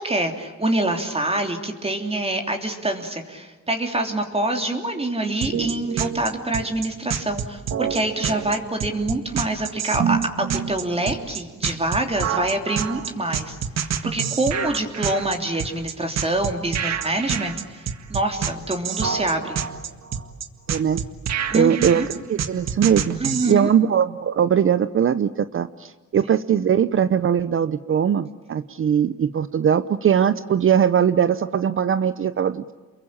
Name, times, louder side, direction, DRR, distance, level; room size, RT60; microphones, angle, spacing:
voice 1, 0.0-13.6 14.0-19.6 21.5-22.1 23.2-23.7, right 1 dB, 20° right, 4 dB, 3.2 m, -25 dB
sound 1, 5.4-23.5, right 7 dB, 60° right, 1.9 m, -27 dB
voice 2, 20.7-21.0 21.5-22.0 22.3-23.1 23.5-32.7, right 8 dB, 45° right, 13 dB, 0.8 m, -20 dB
28.5 x 22.5 x 8.7 m, 1.3 s
cardioid pair, 90°, 30 cm